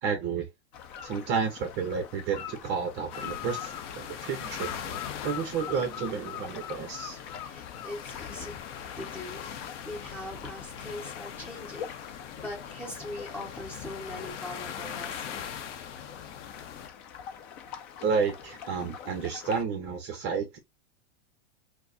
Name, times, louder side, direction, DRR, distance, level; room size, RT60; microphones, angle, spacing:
voice 1, 0.0-0.5 1.0-7.2 18.0-20.6, right 5 dB, 30° right, 0.7 m, -31 dB
sound 1, 0.7-19.6, left 9 dB, 45° left, 0.7 m, -44 dB
sound 2, 3.1-16.9, left 8 dB, 90° left, 0.8 m, -41 dB
voice 2, 7.4-8.5 9.0-15.5, left 1 dB, 5° left, 1.3 m, -41 dB
4.6 x 2.1 x 2.6 m
supercardioid pair, 155°, 35 cm